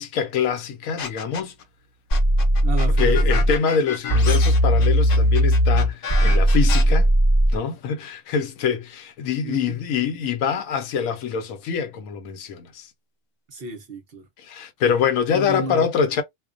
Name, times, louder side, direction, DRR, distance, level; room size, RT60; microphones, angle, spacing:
voice 1, 0.0-1.5 3.0-7.1 7.5-12.9 14.4-16.2, left 7 dB, 80° left, 1.0 m, -25 dB
sound 1, 1.0-1.6 2.1-6.8, left 6 dB, 60° left, 0.6 m, -31 dB
sound 2, 2.1-3.6 4.1-7.6, equal, 35° left, 0.8 m, -18 dB
voice 2, 2.6-3.3 9.4-9.8 13.5-14.2 15.3-15.9, right 3 dB, 55° right, 0.7 m, -32 dB
2.4 x 2.1 x 2.4 m
omnidirectional pair, 1.4 m